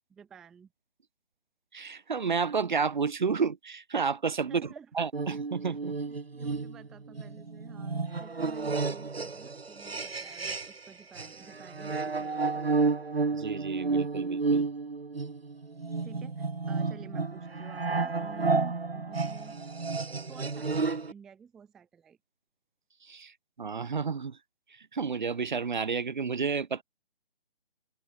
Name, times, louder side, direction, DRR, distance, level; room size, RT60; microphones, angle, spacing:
voice 1, 0.1-0.7 4.5-4.9 5.8-12.9 16.0-19.6 20.3-22.2, right 7 dB, ahead, 0.6 m, -52 dB
voice 2, 1.7-6.0 13.3-14.7 23.0-23.3 23.6-24.4 24.7-26.8, right 5 dB, 50° right, 1.3 m, -31 dB
sound 1, 5.1-10.9 11.2-21.1, right 4 dB, 85° right, 0.8 m, -31 dB
figure-of-eight pair, 145°, 30 cm